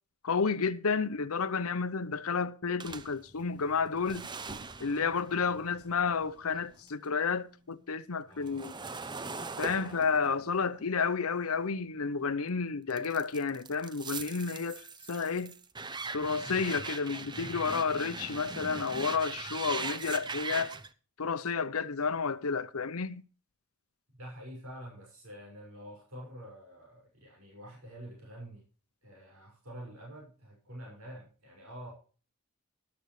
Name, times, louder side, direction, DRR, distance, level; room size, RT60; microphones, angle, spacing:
voice 1, 0.2-4.3 4.8-8.8 9.6-15.5 16.1-20.7 21.2-23.2, left 5 dB, 90° left, 0.8 m, -31 dB
sound 1, 2.8-7.1 7.4-12.3 12.9-20.9, right 4 dB, 20° right, 0.7 m, -41 dB
voice 2, 8.3-8.7 24.2-28.6 29.0-31.9, equal, 90° right, 6.0 m, -47 dB
13.0 x 12.5 x 3.2 m
head